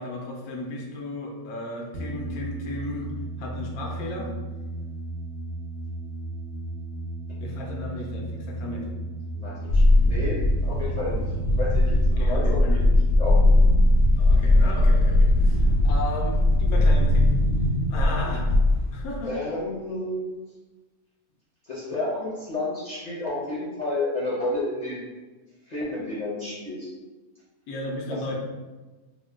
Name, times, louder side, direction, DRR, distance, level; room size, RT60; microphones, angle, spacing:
voice 1, 0.0-3.1 3.4-4.3 7.4-8.9 12.1-12.9 14.2-17.3 17.9-18.5 18.9-19.3 27.7-28.3, left 2 dB, 90° left, 0 dB, 1.1 m, -34 dB
sound 1, 1.9-15.2, right 2 dB, 65° right, 1.1 m, -35 dB
voice 2, 9.3-11.2 11.6-13.5 19.2-20.4 21.6-25.1 25.7-26.9 28.2-28.3, left 2 dB, 50° left, -8 dB, 0.5 m, -31 dB
sound 2, 9.7-19.1, left 1 dB, 70° left, 0.8 m, -19 dB
2.9 x 2.1 x 3.4 m, 1.2 s
omnidirectional pair, 1.5 m